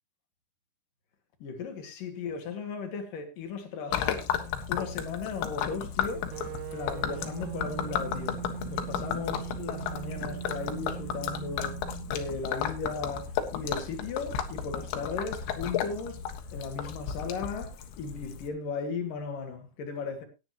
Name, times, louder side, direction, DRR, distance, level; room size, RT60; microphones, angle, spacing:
voice 1, 1.4-4.3 4.7-6.3 6.7-11.8 12.1-20.3, left 4 dB, 55° left, 3.3 m, -36 dB
Gurgling / Liquid, 3.9-18.5, left 8 dB, 75° left, 3.6 m, -34 dB
sound 1, 6.3-12.4, right 15 dB, 80° right, 3.0 m, -40 dB
17.5 x 10.5 x 3.0 m
omnidirectional pair, 5.3 m